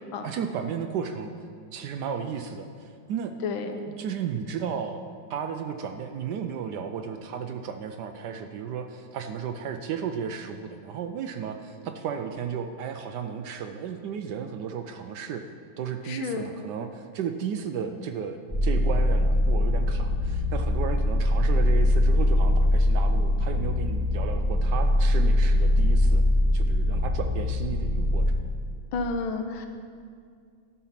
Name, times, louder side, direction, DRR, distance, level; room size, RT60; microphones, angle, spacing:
voice 1, 0.2-1.3 1.7-3.4 3.9-5.0 5.3-15.4 15.8-26.3 26.5-28.4, right 7 dB, 75° right, 7 dB, 1.0 m, -34 dB
voice 2, 16.0-16.5 28.9-29.7, left 4 dB, 85° left, 6 dB, 1.6 m, -30 dB
sound 1, 18.5-28.3, left 1 dB, 15° left, 1.6 m, -22 dB
12.5 x 5.6 x 5.8 m, 2.2 s
omnidirectional pair, 2.2 m